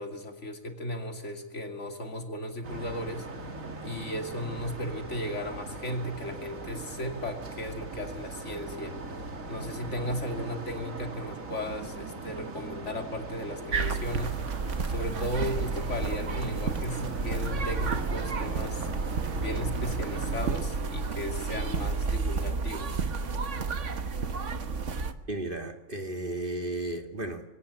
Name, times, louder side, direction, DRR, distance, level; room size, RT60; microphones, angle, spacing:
voice 1, 0.0-3.3 3.8-8.9 9.5-14.4 14.9-18.9 19.3-23.1, left 1 dB, 65° left, 3.2 m, -35 dB
sound 1, 2.6-20.5, right 3 dB, 85° right, 2.7 m, -39 dB
sound 2, 13.7-25.1, right 4 dB, 65° right, 1.6 m, -31 dB
voice 2, 25.3-27.4, right 2 dB, 40° right, 2.3 m, -34 dB
23.5 x 17.5 x 10.0 m
omnidirectional pair, 1.4 m